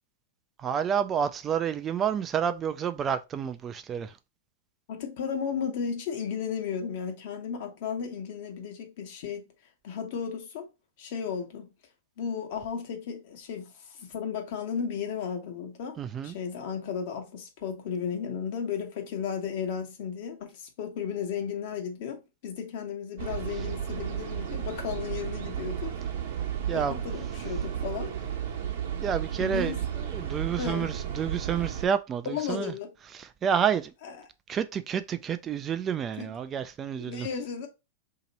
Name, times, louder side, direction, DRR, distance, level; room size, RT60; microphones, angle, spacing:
voice 1, 0.6-4.2 16.0-16.4 26.7-27.0 29.0-32.7 33.1-33.9 34.5-37.3, right 8 dB, 25° right, 0.3 m, -29 dB
voice 2, 4.9-9.4 9.8-10.7 11.0-11.7 12.2-26.0 26.7-28.1 29.4-29.8 30.6-30.9 32.2-32.9 34.0-34.1 36.2-36.3 37.0-37.7, left 7 dB, 60° left, 1.1 m, -34 dB
sound 1, 23.2-31.9, right 9 dB, 65° right, 0.9 m, -33 dB
2.9 x 2.8 x 4.0 m
hypercardioid pair, 120°, 0 cm